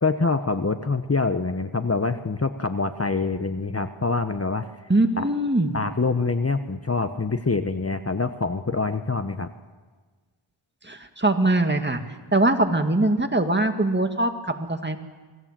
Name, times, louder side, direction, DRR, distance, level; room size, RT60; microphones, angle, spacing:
voice 1, 0.0-4.7 5.2-5.3 5.7-9.5, left 3 dB, 30° left, 9 dB, 1.0 m, -25 dB
voice 2, 4.9-5.8 10.8-12.0 12.3-15.0, right 2 dB, 20° right, 5 dB, 2.1 m, -22 dB
28.0 x 19.0 x 7.6 m, 1.4 s
wide cardioid pair, 65°, 50 cm